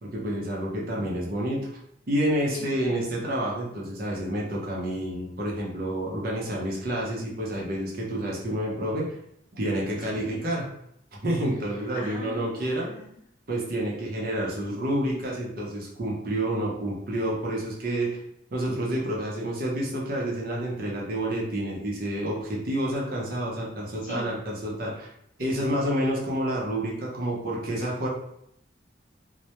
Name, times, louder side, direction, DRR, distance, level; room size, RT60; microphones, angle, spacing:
voice 1, 0.0-1.7 2.1-9.2 9.5-10.7 11.2-12.9 13.5-18.2 18.5-25.1 25.4-28.1, right 1 dB, 50° right, -3 dB, 0.6 m, -29 dB
voice 2, 2.5-3.1 10.0-10.3 11.7-13.2 24.0-24.4 25.6-26.0, left 1 dB, 45° left, -5 dB, 0.7 m, -42 dB
2.1 x 2.1 x 2.8 m, 0.75 s
head